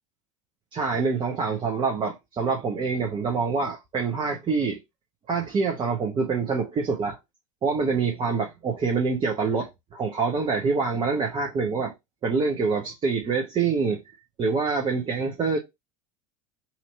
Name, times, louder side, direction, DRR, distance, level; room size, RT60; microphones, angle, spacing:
voice 1, 0.7-4.8 5.3-7.2 7.6-11.9 12.2-14.0 14.4-15.6, right 4 dB, 25° right, 0.9 m, -26 dB
2.9 x 2.7 x 4.1 m
figure-of-eight pair, 75°, 18 cm